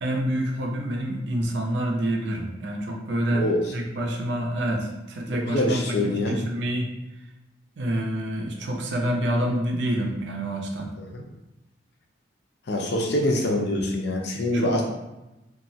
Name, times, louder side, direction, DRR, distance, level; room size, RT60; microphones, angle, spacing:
voice 1, 0.0-6.9 7.8-10.9 14.5-14.8, right 1 dB, 60° right, 1 dB, 0.5 m, -27 dB
voice 2, 5.5-6.4 11.1-11.2 12.7-14.8, left 1 dB, 55° left, 1 dB, 0.5 m, -25 dB
2.9 x 2.3 x 2.7 m, 0.98 s
head